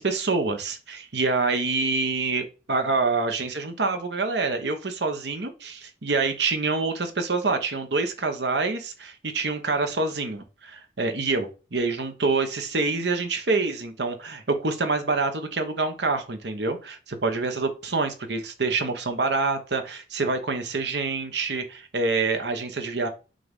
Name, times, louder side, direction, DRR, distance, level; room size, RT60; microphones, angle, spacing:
voice 1, 0.0-23.1, right 3 dB, 70° right, 6 dB, 1.1 m, -26 dB
7.6 x 2.6 x 5.2 m, 0.33 s
head